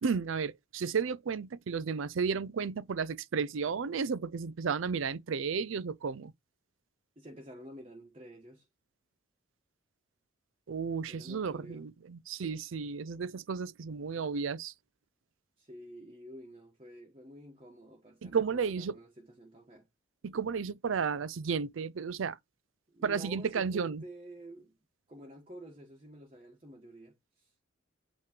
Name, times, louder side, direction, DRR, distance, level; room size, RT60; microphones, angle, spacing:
voice 1, 0.0-6.3 10.7-14.7 18.2-19.0 20.2-22.4 23.0-24.0, right 5 dB, 80° right, 0.5 m, -33 dB
voice 2, 7.2-8.7 11.1-11.9 15.6-19.9 22.9-24.7 25.1-27.5, right 1 dB, 30° right, 1.2 m, -50 dB
8.6 x 3.1 x 5.1 m
head